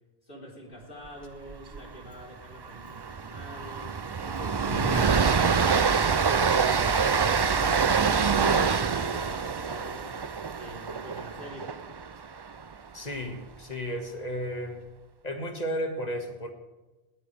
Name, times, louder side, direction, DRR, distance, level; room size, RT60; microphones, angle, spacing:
voice 1, 0.2-3.9 4.2-10.1 10.5-11.7, equal, 55° left, -3 dB, 3.9 m, -45 dB
Train, 1.5-1.8 2.1-2.2 2.6-12.7, right 5 dB, 40° right, 0.3 m, -26 dB
voice 2, 4.6-5.0 12.9-14.9 15.2-16.5, equal, 40° left, 4 dB, 2.0 m, -33 dB
19.5 x 15.0 x 3.4 m, 1.1 s
omnidirectional pair, 1.1 m